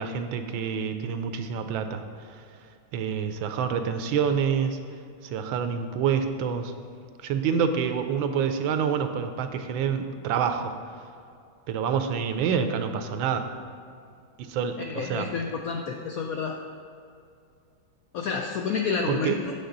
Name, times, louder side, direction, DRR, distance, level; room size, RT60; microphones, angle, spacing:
voice 1, 0.0-2.0 2.9-4.8 5.2-6.7 7.2-10.7 11.7-13.5 14.4-15.3 19.1-19.4, right 7 dB, 85° right, 8 dB, 1.4 m, -27 dB
voice 2, 14.8-16.6 18.1-19.5, left 5 dB, 80° left, 3 dB, 0.8 m, -29 dB
8.6 x 7.3 x 3.9 m, 2.4 s
omnidirectional pair, 2.1 m